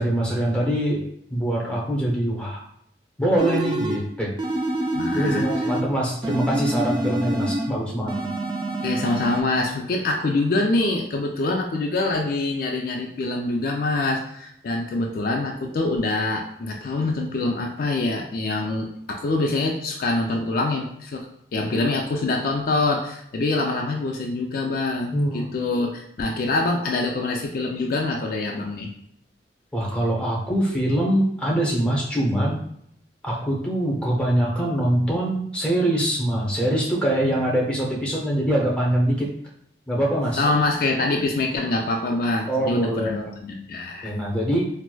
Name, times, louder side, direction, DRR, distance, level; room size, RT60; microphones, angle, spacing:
voice 1, 0.0-2.6 3.2-4.3 5.1-8.3 25.1-25.5 29.7-32.6 33.2-39.3 39.9-40.4 42.5-43.3 44.0-44.7, right 1 dB, 5° left, -4 dB, 0.7 m, -23 dB
sound 1, 3.4-4.1 4.4-5.9 6.2-7.7 8.1-9.4, right 1 dB, 25° right, 0.3 m, -26 dB
voice 2, 4.9-5.5 8.8-28.9 37.2-37.4 40.4-44.1, left 2 dB, 50° left, 1 dB, 0.3 m, -25 dB
4.5 x 2.0 x 2.2 m, 0.72 s
head